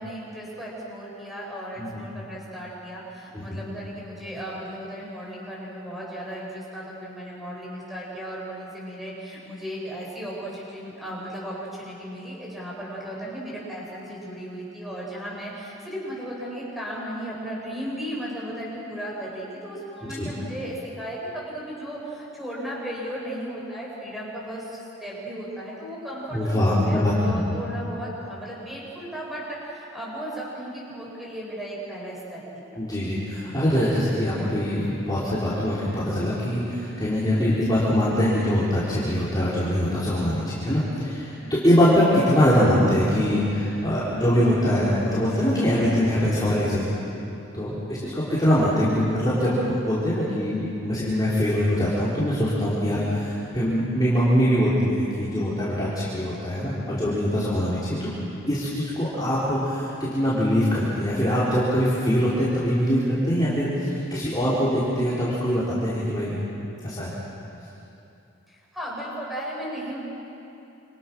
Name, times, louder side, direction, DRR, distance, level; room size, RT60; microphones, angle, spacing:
voice 1, 0.0-32.8 41.4-41.5 47.9-48.1 52.9-53.0 57.0-57.2 68.5-70.0, equal, ahead, -5 dB, 8.0 m, -35 dB
voice 2, 26.3-27.6 32.8-46.9 47.5-58.1 58.5-66.4 66.8-67.1, equal, 20° left, -10 dB, 4.6 m, -23 dB
28.5 x 27.5 x 6.4 m, 2.9 s
head